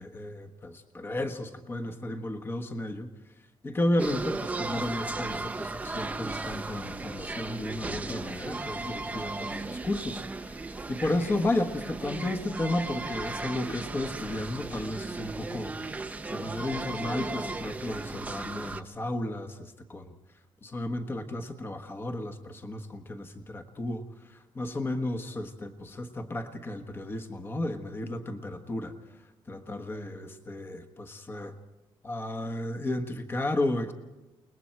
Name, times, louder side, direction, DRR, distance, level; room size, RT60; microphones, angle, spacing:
voice 1, 0.0-3.1 3.6-10.5 10.9-15.7 16.3-20.1 20.6-28.9 29.5-31.5 32.0-33.9, left 1 dB, 25° left, 6 dB, 1.4 m, -33 dB
sound 1, 4.0-18.8, right 3 dB, 15° right, 0.7 m, -36 dB
29.5 x 20.5 x 4.6 m, 1.1 s
cardioid pair, 160°, 10 cm